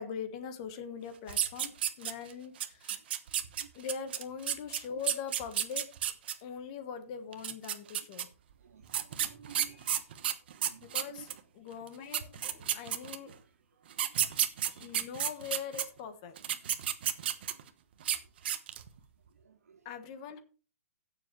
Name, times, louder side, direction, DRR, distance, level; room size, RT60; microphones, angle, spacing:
voice 1, 0.0-3.0 3.7-5.9 6.4-8.3 9.5-9.9 10.8-13.4 14.1-16.3 19.8-20.4, left 7 dB, 25° left, 1.3 m, -42 dB
sound 1, 1.3-2.3 2.6-6.3 7.3-8.2 8.9-11.4 11.9-12.0 12.1-13.3 13.9-15.8 16.4-17.7 18.0-18.2 18.4-18.9, right 10 dB, 45° right, 1.1 m, -31 dB
voice 2, 8.6-10.0 10.6-11.3 13.2-13.4 14.6-14.7 16.6-16.7 19.4-19.8, right 8 dB, 90° right, 1.9 m, -54 dB
16.5 x 7.2 x 3.2 m
hypercardioid pair, 175°, 8 cm